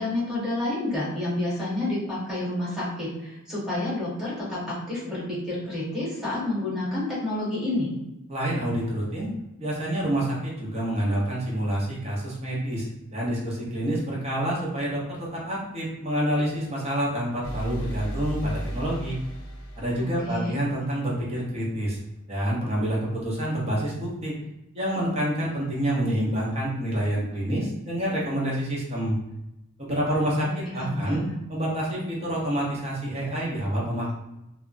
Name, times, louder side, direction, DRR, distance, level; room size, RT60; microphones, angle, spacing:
voice 1, 0.0-7.9 20.0-20.6 30.4-31.4, left 1 dB, ahead, -9 dB, 1.2 m, -29 dB
voice 2, 8.3-9.3 9.6-12.9 13.1-19.2 19.8-22.0 22.3-24.3 24.7-29.2 29.8-30.5 30.7-31.2 31.5-34.1, right 1 dB, 30° right, -5 dB, 0.8 m, -27 dB
sound 1, 17.4-21.2, right 1 dB, 70° left, 0.6 m, -35 dB
2.2 x 2.0 x 3.8 m, 0.91 s
head